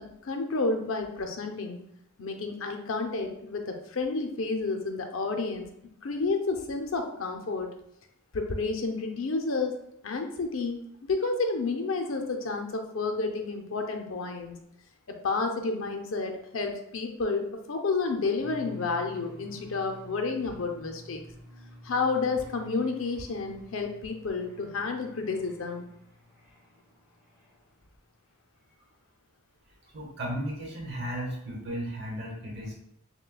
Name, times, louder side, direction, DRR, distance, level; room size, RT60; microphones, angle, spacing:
voice 1, 0.2-1.8 2.2-5.7 6.0-7.7 8.3-9.7 10.0-14.6 15.1-21.2 21.8-25.9, left 3 dB, 70° left, 3 dB, 0.6 m, -30 dB
sound 1, 18.4-27.9, left 1 dB, 10° right, 1.0 m, -50 dB
voice 2, 29.9-32.7, equal, 55° right, -1 dB, 1.0 m, -35 dB
6.4 x 2.2 x 2.2 m, 0.76 s
head